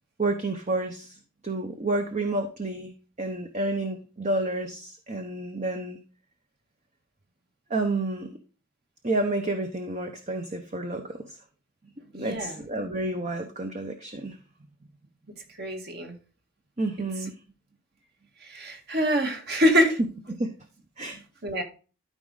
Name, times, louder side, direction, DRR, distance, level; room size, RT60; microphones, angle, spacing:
voice 1, 0.2-1.1 1.4-2.9 3.2-6.0 7.7-8.3 9.0-11.4 12.2-14.4 16.8-17.3 20.4-20.5 21.0-21.2, right 2 dB, 35° right, 5 dB, 0.9 m, -30 dB
voice 2, 12.1-12.6 15.6-16.2 18.4-20.0 21.4-21.6, equal, 50° right, 3 dB, 2.0 m, -25 dB
13.0 x 4.9 x 4.1 m, 0.35 s
head